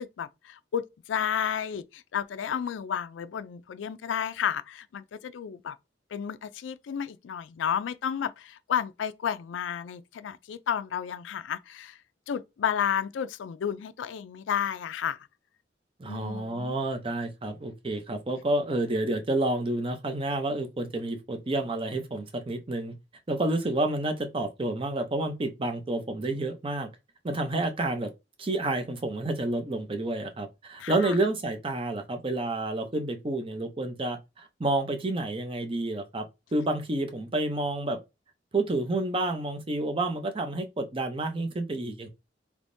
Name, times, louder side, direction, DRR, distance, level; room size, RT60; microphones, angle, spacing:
voice 1, 0.0-5.8 6.1-12.0 12.3-15.2 16.1-16.7 30.8-31.2, left 8 dB, 85° left, 0.3 m, -32 dB
voice 2, 16.0-22.9 23.3-26.9 27.2-28.1 28.4-36.3 36.5-38.0 38.5-42.1, right 2 dB, 30° right, 0.6 m, -29 dB
3.5 x 2.9 x 2.6 m
head